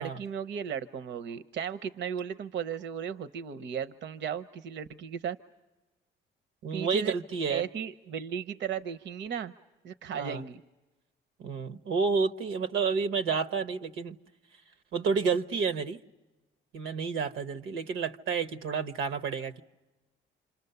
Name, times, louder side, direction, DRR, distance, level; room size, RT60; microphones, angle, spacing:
voice 1, 0.0-5.4 6.7-7.1 7.5-9.5 9.8-10.6, right 7 dB, 65° right, 0.8 m, -35 dB
voice 2, 6.6-7.6 10.1-10.4 11.4-14.2 14.9-16.0 16.7-19.6, right 5 dB, 85° right, 1.0 m, -30 dB
28.0 x 26.5 x 6.8 m
cardioid pair, 90°, 20 cm